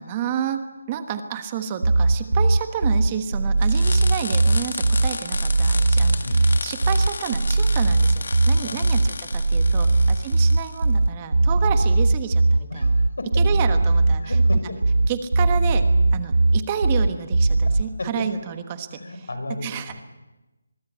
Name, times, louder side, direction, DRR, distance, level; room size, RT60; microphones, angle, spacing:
voice 1, 0.0-12.9 13.4-14.4 15.0-15.8 16.1-19.0 19.6-19.9, right 8 dB, 15° right, 8 dB, 1.2 m, -30 dB
sound 1, 1.8-17.8, right 2 dB, 80° right, 1.0 m, -19 dB
sound 2, 3.6-10.8, left 4 dB, 55° left, 1.9 m, -33 dB
voice 2, 8.6-9.0 9.8-10.2 11.4-11.5 12.7-13.4 14.2-14.8 17.6-18.3 18.9-20.0, left 2 dB, 80° left, 8 dB, 6.5 m, -34 dB
25.0 x 22.0 x 8.4 m, 1.1 s
figure-of-eight pair, 175°, 0 cm